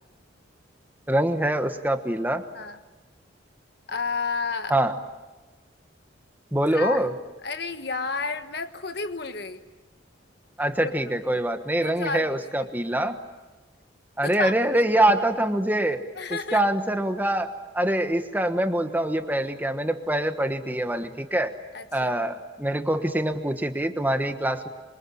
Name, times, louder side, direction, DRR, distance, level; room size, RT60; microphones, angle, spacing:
voice 1, 1.1-2.4 4.7-4.9 6.5-7.2 10.6-13.2 14.2-16.0 16.3-21.6 21.9-24.7, right 1 dB, 10° right, 7 dB, 1.3 m, -24 dB
voice 2, 3.9-4.7 6.7-7.1 7.4-9.6 10.8-10.9 11.3-11.4 11.8-12.7 14.2-14.5 16.2-16.6 21.7-22.1, left 4 dB, 60° left, 9 dB, 1.4 m, -31 dB
27.0 x 25.0 x 8.7 m, 1.2 s
head